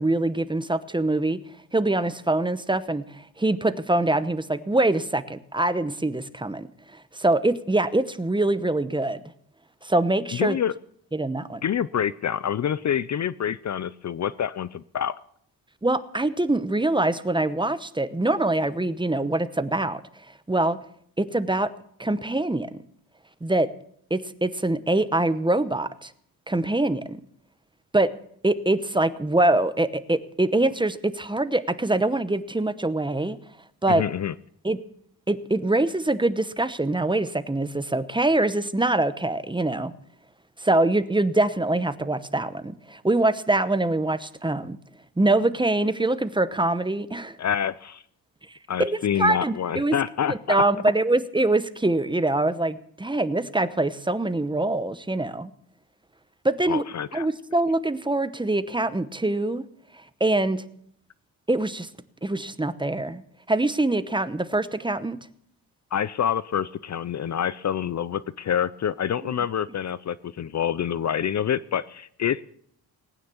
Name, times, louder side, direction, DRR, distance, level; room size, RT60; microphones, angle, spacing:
voice 1, 0.0-1.4 1.7-6.7 6.9-9.2 9.8-10.6 11.1-11.6 15.8-20.0 20.5-20.8 21.2-21.7 22.0-22.7 23.4-23.7 24.1-26.1 26.5-27.2 27.9-28.1 28.4-33.4 33.8-34.0 34.6-34.8 35.3-39.9 40.6-44.8 45.2-47.4 48.8-50.0 50.3-55.5 56.4-56.8 57.1-59.6 60.2-60.6 61.5-61.9 62.2-63.2 63.5-65.2 69.2-69.3, right 2 dB, 10° right, 13 dB, 0.9 m, -24 dB
voice 2, 10.4-10.7 11.6-15.2 33.9-34.3 47.4-48.0 48.7-50.6 56.7-57.3 65.9-72.4, left 9 dB, 45° left, 18 dB, 0.5 m, -27 dB
19.0 x 9.5 x 7.0 m, 0.67 s
cardioid pair, 105°, 39 cm